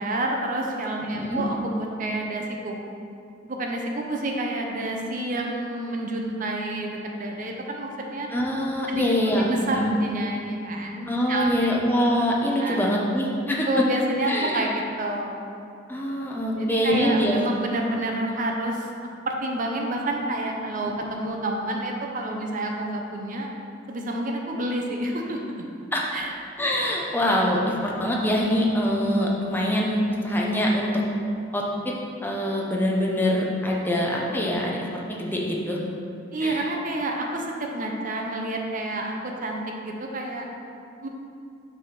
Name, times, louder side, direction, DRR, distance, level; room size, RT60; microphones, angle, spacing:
voice 1, 0.0-2.8 3.4-8.3 8.9-9.0 9.4-11.7 12.6-12.8 13.7-15.4 16.6-18.9 19.3-23.5 23.9-25.6 26.1-26.3 36.3-40.5 41.0-41.1, right 1 dB, 45° right, 1 dB, 0.6 m, -29 dB
voice 2, 1.1-1.4 8.3-9.9 11.1-13.8 14.3-14.7 15.9-17.5 25.9-26.0 26.6-31.0 31.5-31.9 32.2-35.8 36.4-36.7, equal, 10° left, -3 dB, 0.7 m, -24 dB
6.0 x 3.5 x 5.7 m, 2.5 s
head